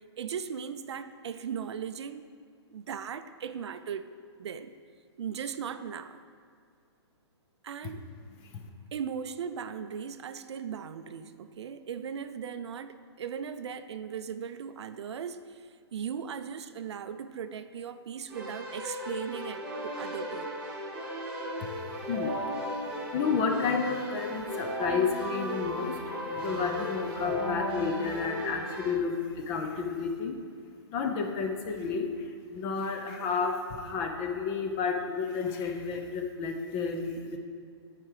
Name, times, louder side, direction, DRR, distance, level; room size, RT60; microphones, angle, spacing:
voice 1, 0.0-2.3 2.7-4.0 4.4-4.7 5.2-6.2 7.6-8.1 8.9-20.6, right 7 dB, 70° right, 11 dB, 0.4 m, -38 dB
Keyboard (musical), 18.3-28.9, equal, 5° right, 1.2 m, -35 dB
voice 2, 21.6-37.4, left 5 dB, 20° left, 4 dB, 0.5 m, -32 dB
8.8 x 4.9 x 4.8 m, 2.3 s
hypercardioid pair, 165°, 15 cm